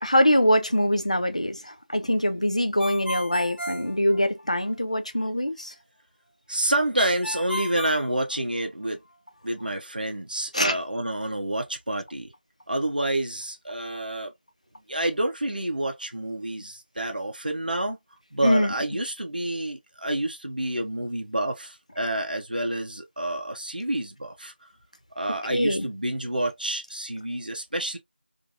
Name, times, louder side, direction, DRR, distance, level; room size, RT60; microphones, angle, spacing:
voice 1, 0.0-5.7 10.5-10.8 18.4-18.7 25.5-25.8, equal, 40° left, 0.3 m, -23 dB
Ringtone, 2.8-4.7 7.0-8.9, left 1 dB, 80° left, 0.9 m, -34 dB
voice 2, 6.5-9.0 9.4-12.3 12.7-14.3 14.9-18.0 18.3-24.7 25.1-28.0, right 1 dB, 55° right, 0.6 m, -28 dB
2.7 x 2.6 x 2.6 m
figure-of-eight pair, 175°, 6 cm